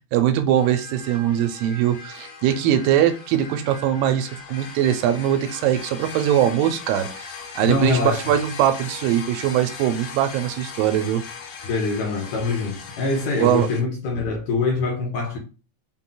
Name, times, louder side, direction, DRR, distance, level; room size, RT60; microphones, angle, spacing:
voice 1, 0.1-7.3 7.6-11.2 13.4-13.7, right 11 dB, 85° right, 2.2 m, -21 dB
sound 1, 0.5-13.8, left 5 dB, 85° left, 2.5 m, -39 dB
voice 2, 7.6-8.2 11.6-15.4, left 3 dB, 70° left, 1.9 m, -24 dB
5.7 x 2.2 x 3.8 m
omnidirectional pair, 4.0 m